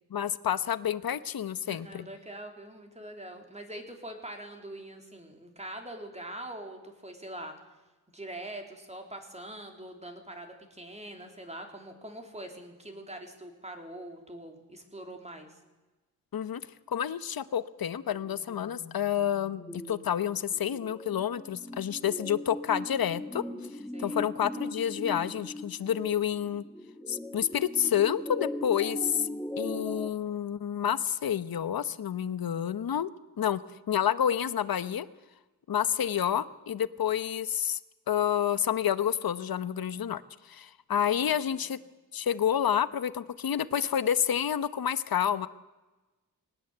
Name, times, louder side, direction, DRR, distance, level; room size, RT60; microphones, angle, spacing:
voice 1, 0.1-2.1 16.3-16.6 16.9-23.4 24.0-26.6 27.1-29.3 29.6-33.1 33.4-33.6 33.9-35.1 35.7-37.8 38.1-41.8 42.1-45.5, left 9 dB, 65° left, 14 dB, 1.0 m, -29 dB
voice 2, 1.7-7.5 8.1-15.6 23.9-24.2 41.3-41.7, right 1 dB, 15° right, 3 dB, 3.7 m, -43 dB
sound 1, 18.0-30.1, left 1 dB, 5° left, 2.3 m, -40 dB
21.0 x 19.0 x 8.0 m, 1.1 s
wide cardioid pair, 115°, 38 cm